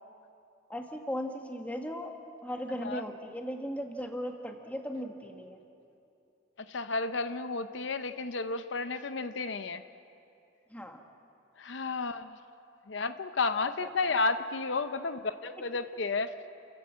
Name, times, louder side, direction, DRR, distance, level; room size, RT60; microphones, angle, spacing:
voice 1, 0.7-2.1 2.4-5.6 10.7-11.0 14.0-14.1, equal, 10° left, 3 dB, 1.7 m, -37 dB
voice 2, 6.7-9.8 11.6-12.4 12.9-16.3, left 3 dB, 75° left, 10 dB, 0.8 m, -32 dB
29.5 x 15.5 x 7.5 m, 2.7 s
head